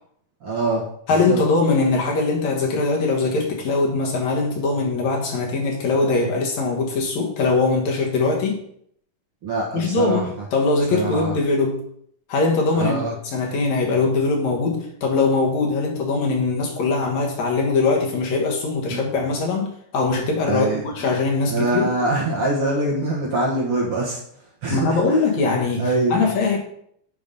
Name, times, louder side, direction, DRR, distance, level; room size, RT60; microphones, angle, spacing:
voice 1, 0.4-0.8 1.3-1.4 9.4-10.2 10.9-11.3 12.8-13.1 18.9-19.0 20.5-20.8 21.5-24.2 24.6-25.0 25.8-26.2, right 2 dB, 55° right, -3 dB, 1.8 m, -23 dB
voice 2, 1.1-8.6 9.7-11.9 12.3-21.9 24.7-26.6, left 3 dB, 65° left, 0 dB, 2.4 m, -21 dB
7.5 x 5.1 x 5.3 m, 0.68 s
omnidirectional pair, 3.8 m